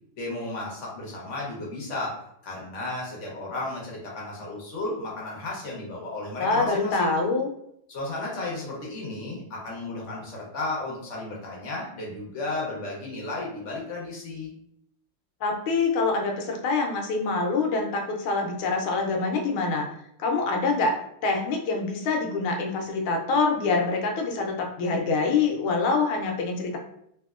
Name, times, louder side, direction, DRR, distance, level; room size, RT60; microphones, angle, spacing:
voice 1, 0.2-7.2 7.9-14.5, left 2 dB, 50° left, -4 dB, 0.9 m, -34 dB
voice 2, 6.4-7.5 15.4-19.9 20.2-20.9 21.2-26.8, left 3 dB, 80° left, 1 dB, 1.5 m, -25 dB
3.4 x 2.6 x 2.4 m, 0.73 s
omnidirectional pair, 2.3 m